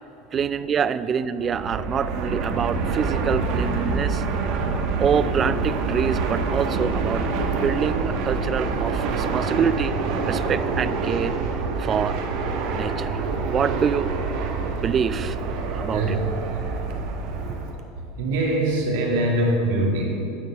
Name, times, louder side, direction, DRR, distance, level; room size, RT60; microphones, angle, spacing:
voice 1, 0.3-4.2 5.0-7.3 7.5-9.9 10.3-11.3 11.8-12.2 12.7-14.1 14.7-15.4 15.8-16.0, right 7 dB, 30° right, 14 dB, 0.3 m, -25 dB
Fixed-wing aircraft airplane, 1.4-17.8, right 4 dB, 65° right, 1.0 m, -26 dB
voice 2, 17.9-20.1, right 1 dB, 85° right, -1 dB, 2.0 m, -23 dB
10.5 x 4.6 x 7.3 m, 2.9 s
supercardioid pair, 115°, 0 cm